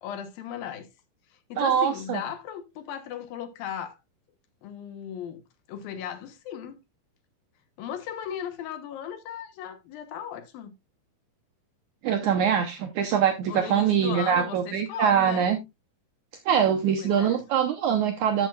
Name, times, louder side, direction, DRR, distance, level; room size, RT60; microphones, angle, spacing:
voice 1, 0.0-0.9 1.3-4.0 4.6-5.4 5.7-6.8 7.8-10.7 13.4-15.5 17.0-17.4, left 9 dB, 70° left, 2.7 m, -36 dB
voice 2, 1.6-2.2 12.0-15.6 16.4-18.5, right 8 dB, 80° right, 1.8 m, -23 dB
12.5 x 7.2 x 2.3 m
omnidirectional pair, 4.4 m